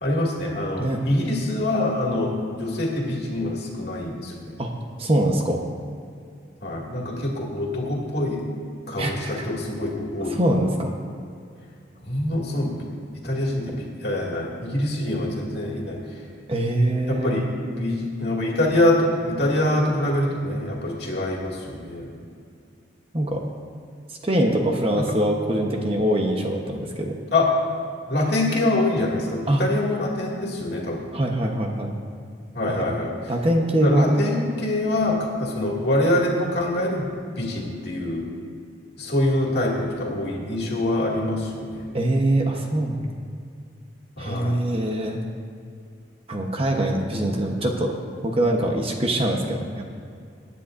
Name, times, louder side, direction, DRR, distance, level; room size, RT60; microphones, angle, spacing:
voice 1, 0.0-4.5 6.6-8.4 8.9-10.4 12.1-12.8 13.2-16.0 17.1-17.5 17.8-22.2 25.8-26.0 27.3-27.5 28.1-31.0 32.5-33.3 33.8-37.1 37.4-38.3 39.0-41.8 44.2-44.6, left 1 dB, 55° left, -3 dB, 2.2 m, -25 dB
voice 2, 5.0-5.6 9.0-9.4 10.3-10.9 16.5-17.4 23.1-23.4 24.2-27.1 29.5-29.6 31.1-31.9 32.7-32.8 33.3-34.1 41.9-43.1 44.2-45.2 46.3-47.9 48.2-49.9, right 1 dB, 30° right, 1 dB, 1.0 m, -23 dB
23.0 x 9.8 x 2.6 m, 2.4 s
head